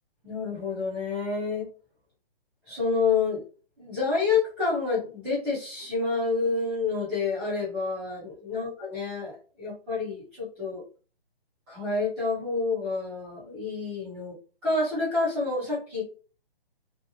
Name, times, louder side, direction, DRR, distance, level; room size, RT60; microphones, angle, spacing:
voice 1, 0.2-1.7 2.7-3.4 3.8-10.8 11.7-14.3 14.6-16.0, left 4 dB, 5° right, -10 dB, 0.5 m, -28 dB
2.7 x 2.1 x 2.7 m, 0.38 s
hypercardioid pair, 155°, 30 cm